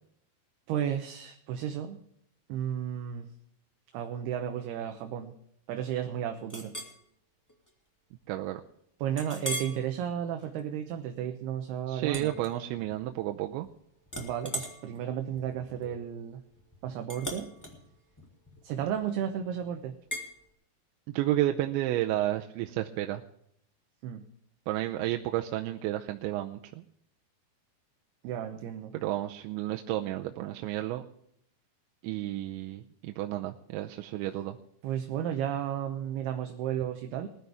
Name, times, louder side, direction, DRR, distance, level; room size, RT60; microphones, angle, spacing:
voice 1, 0.7-2.0 2.5-3.3 3.9-5.4 5.7-6.7 9.0-12.3 14.2-16.4 16.8-17.5 18.6-20.0 24.0-24.2 28.2-28.9 34.8-37.3, right 9 dB, 75° right, 5 dB, 2.7 m, -33 dB
Chink clink, 6.5-7.0 7.5-7.7 8.1-8.2 9.2-9.8 10.3-10.6 12.1-13.0 13.3-13.7 14.1-19.2 20.1-20.3, equal, 25° left, 0.4 m, -40 dB
voice 2, 8.3-8.6 11.9-13.7 21.1-23.2 24.7-26.8 28.9-31.0 32.0-34.6, right 14 dB, 90° right, 4 dB, 3.0 m, -31 dB
20.0 x 12.5 x 3.5 m, 0.70 s
omnidirectional pair, 5.2 m